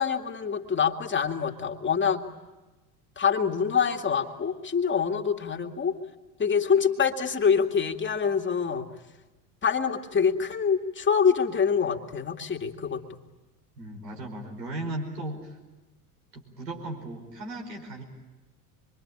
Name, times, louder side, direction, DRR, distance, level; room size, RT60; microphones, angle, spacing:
voice 1, 0.0-2.2 3.2-6.0 6.4-8.9 9.6-13.0, left 6 dB, 25° left, 3 dB, 2.2 m, -25 dB
voice 2, 13.8-15.6 16.3-18.0, right 1 dB, 85° right, 1 dB, 5.2 m, -36 dB
26.0 x 23.5 x 8.8 m, 1.2 s
hypercardioid pair, 80°, 48 cm